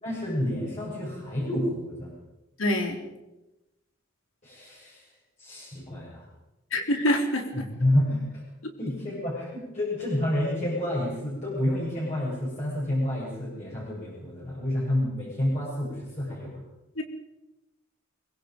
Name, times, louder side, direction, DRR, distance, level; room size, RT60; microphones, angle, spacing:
voice 1, 0.0-2.1 4.4-5.0 5.4-6.2 7.5-8.4 8.8-16.6, left 1 dB, 35° left, -7 dB, 7.9 m, -29 dB
voice 2, 2.6-3.0 6.7-7.7 17.0-17.1, left 1 dB, 75° left, 4 dB, 3.8 m, -25 dB
24.0 x 23.0 x 5.4 m, 0.98 s
head